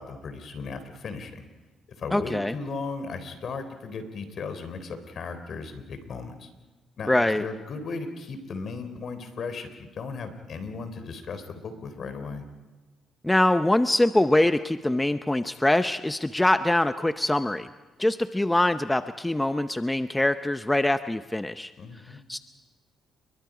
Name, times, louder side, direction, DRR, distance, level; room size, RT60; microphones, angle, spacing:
voice 1, 0.0-1.4 2.0-6.5 7.0-12.5 21.8-22.2, left 4 dB, 60° left, 9 dB, 3.5 m, -36 dB
voice 2, 2.1-2.5 7.1-7.4 13.2-17.7 18.0-21.7 22.3-22.4, left 1 dB, 10° left, 10 dB, 0.7 m, -23 dB
29.5 x 23.0 x 5.0 m, 1.3 s
cardioid pair, 90°, 0 cm